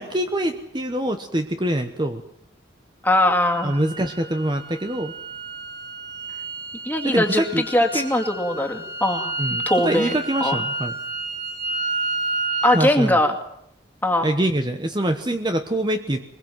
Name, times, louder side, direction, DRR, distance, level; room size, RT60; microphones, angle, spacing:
voice 1, 0.0-2.2 3.6-5.1 7.0-7.6 7.9-8.0 9.4-10.9 12.7-13.2 14.2-16.2, right 1 dB, 25° right, 7 dB, 1.0 m, -24 dB
voice 2, 3.0-3.8 6.8-9.3 9.7-10.1 10.4-10.6 12.6-13.4 14.0-14.3, left 1 dB, 10° left, 3 dB, 2.3 m, -21 dB
sound 1, 3.1-12.8, right 2 dB, 60° right, 5.5 m, -31 dB
23.0 x 21.5 x 7.8 m, 0.75 s
head